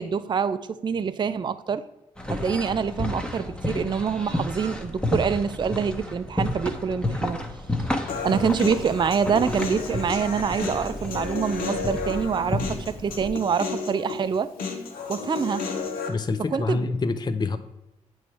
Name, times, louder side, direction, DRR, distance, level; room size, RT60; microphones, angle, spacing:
voice 1, 0.0-1.8 2.3-7.4 8.0-14.5 15.1-15.6 16.5-16.8, right 6 dB, 30° right, 12 dB, 0.4 m, -26 dB
sound 1, 2.2-13.3, left 1 dB, 5° left, 1.0 m, -31 dB
Human voice, 8.1-16.1, left 4 dB, 80° left, 0.8 m, -32 dB
voice 2, 16.1-17.6, left 3 dB, 30° left, 10 dB, 0.4 m, -27 dB
8.1 x 3.1 x 4.6 m, 0.91 s
supercardioid pair, 40°, 15 cm